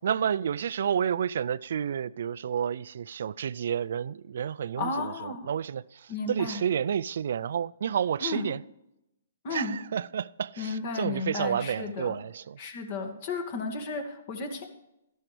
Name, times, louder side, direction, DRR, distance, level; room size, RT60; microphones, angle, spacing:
voice 1, 0.0-8.6 9.5-12.6, right 8 dB, 65° right, 0.3 m, -30 dB
voice 2, 4.8-5.5 6.1-6.6 8.2-8.4 9.4-9.7 10.6-12.2 12.6-14.7, left 3 dB, 45° left, 1.9 m, -33 dB
12.5 x 11.0 x 3.3 m
hypercardioid pair, 140°, 0 cm